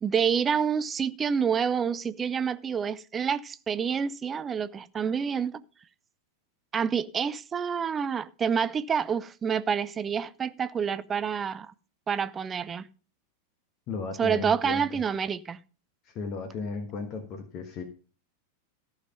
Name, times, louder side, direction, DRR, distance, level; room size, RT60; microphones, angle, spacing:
voice 1, 0.0-5.6 6.7-11.7 12.1-12.9 14.2-15.6, right 7 dB, 20° right, 0.5 m, -28 dB
voice 2, 13.9-14.8 16.1-17.8, left 4 dB, 35° left, 1.4 m, -35 dB
14.0 x 5.7 x 5.1 m
figure-of-eight pair, 90°, 0 cm